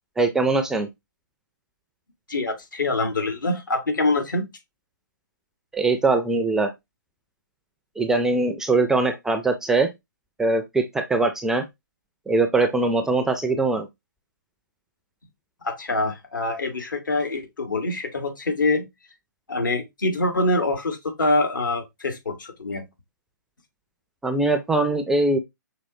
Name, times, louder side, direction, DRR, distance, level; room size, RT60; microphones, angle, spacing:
voice 1, 0.2-0.9 5.7-6.7 8.0-9.9 10.4-11.6 12.3-13.9 24.2-25.4, right 3 dB, 5° right, 0.3 m, -21 dB
voice 2, 2.3-4.5 15.6-18.9 19.5-22.8, left 2 dB, 75° left, 1.3 m, -25 dB
5.5 x 3.0 x 2.6 m
figure-of-eight pair, 130°, 11 cm